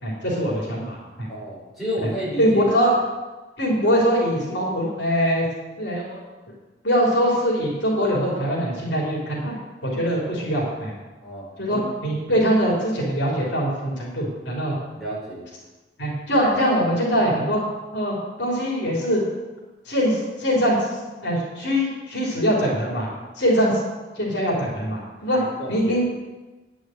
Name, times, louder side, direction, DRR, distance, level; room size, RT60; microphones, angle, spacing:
voice 1, 0.0-1.3 2.4-2.9 3.6-5.5 5.8-6.2 6.8-10.9 11.6-14.8 16.0-17.6 17.9-19.2 19.8-20.9 21.2-23.1 23.4-23.8 24.1-25.4 25.7-26.0, equal, 70° left, -4 dB, 3.4 m, -22 dB
voice 2, 1.3-2.6 3.8-4.0 11.2-11.8 12.3-12.4 14.9-15.4 25.3-26.0, equal, ahead, -8 dB, 4.6 m, -32 dB
10.5 x 6.3 x 7.8 m, 1.2 s
head